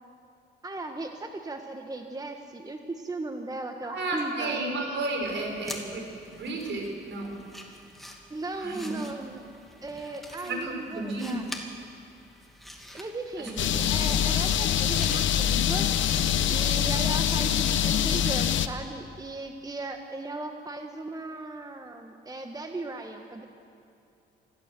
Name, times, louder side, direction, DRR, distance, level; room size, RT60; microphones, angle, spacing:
voice 1, 0.6-4.6 8.3-9.4 9.8-11.4 12.9-13.6 13.9-15.9 16.5-23.4, right 2 dB, 20° right, 5 dB, 1.4 m, -37 dB
voice 2, 3.8-7.4 8.6-9.0 10.4-11.4 13.4-14.0 14.3-14.4, right 2 dB, 65° right, 2 dB, 5.0 m, -33 dB
sound 1, 5.2-15.7, equal, ahead, 2.6 m, -46 dB
sound 2, 13.6-18.7, left 9 dB, 70° left, 1.0 m, -24 dB
24.5 x 15.5 x 7.6 m, 2.6 s
cardioid pair, 90°, 20 cm